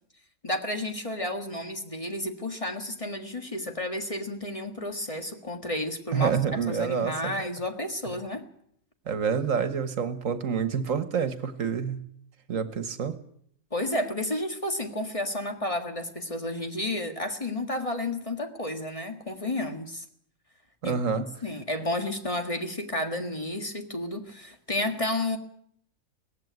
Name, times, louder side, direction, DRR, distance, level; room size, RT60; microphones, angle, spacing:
voice 1, 0.4-6.4 6.7-8.5 13.7-20.0 20.8-25.4, left 1 dB, 25° left, 5 dB, 1.8 m, -31 dB
voice 2, 6.1-7.3 9.1-12.0 12.5-13.2 20.8-21.3, right 6 dB, 75° right, 11 dB, 1.7 m, -27 dB
18.0 x 15.5 x 9.4 m, 0.68 s
omnidirectional pair, 1.4 m